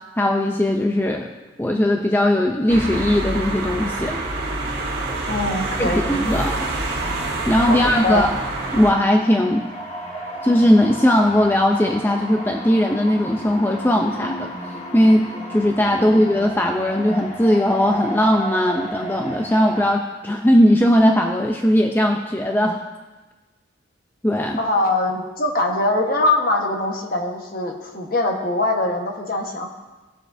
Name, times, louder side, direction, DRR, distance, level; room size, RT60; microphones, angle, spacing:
voice 1, 0.2-1.3 1.6-4.2 5.8-6.6 7.5-8.3 8.7-9.6 10.4-14.5 14.9-15.2 15.5-22.8 24.2-24.6, left 1 dB, 10° left, 1 dB, 0.5 m, -18 dB
sound 1, 2.7-8.9, right 2 dB, 55° right, 2.2 m, -26 dB
voice 2, 5.3-6.4 7.7-8.2 15.9-16.1 24.6-29.7, left 2 dB, 50° left, 2 dB, 1.3 m, -22 dB
sound 2, 6.3-19.9, right 1 dB, 35° left, 1.7 m, -34 dB
18.0 x 7.2 x 2.7 m, 1.2 s
head